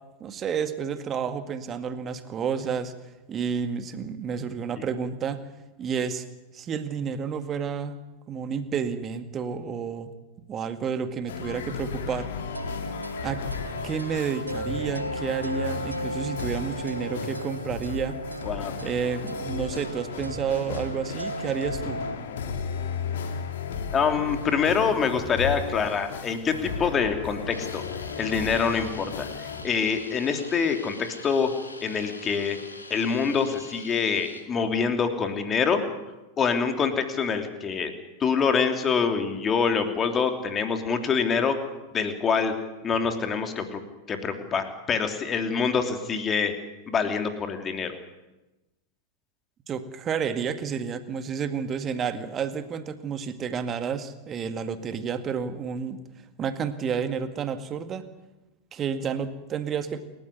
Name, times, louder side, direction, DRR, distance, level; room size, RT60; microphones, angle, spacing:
voice 1, 0.2-2.9 3.3-5.4 5.8-6.3 6.5-7.9 8.3-10.1 10.5-12.3 13.2-13.4 13.8-18.2 18.8-22.0 49.7-56.0 56.4-58.1 58.7-60.0, right 6 dB, 25° right, 9 dB, 2.0 m, -30 dB
sound 1, 11.3-29.6, left 5 dB, 60° left, 2.9 m, -35 dB
sound 2, 12.5-22.2, right 1 dB, 85° right, 1.1 m, -36 dB
voice 2, 18.4-18.7 23.9-27.8 28.2-31.5 31.8-32.6 32.9-35.8 36.4-37.9 38.2-41.6 41.9-42.5 42.8-43.8 44.1-46.5 46.9-47.9, left 6 dB, 25° left, 6 dB, 3.0 m, -25 dB
sound 3, 27.5-34.4, left 3 dB, 80° left, 3.0 m, -44 dB
28.5 x 13.5 x 9.8 m, 1.0 s
figure-of-eight pair, 90°, 0 cm